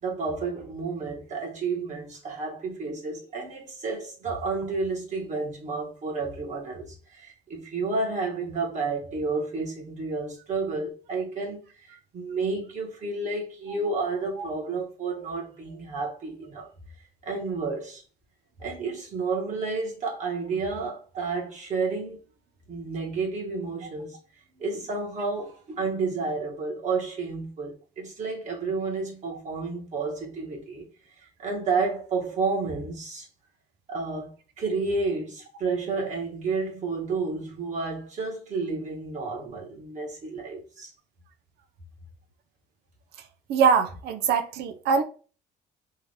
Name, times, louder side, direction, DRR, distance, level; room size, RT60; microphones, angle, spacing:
voice 1, 0.0-16.7 17.2-18.0 18.6-22.2 22.7-24.2 24.5-30.9 31.2-33.3 33.9-40.9, right 4 dB, 45° right, 1.7 m, -31 dB
voice 2, 43.5-45.0, right 6 dB, 75° right, 0.6 m, -23 dB
3.7 x 2.7 x 3.5 m
cardioid pair, 110°, 17 cm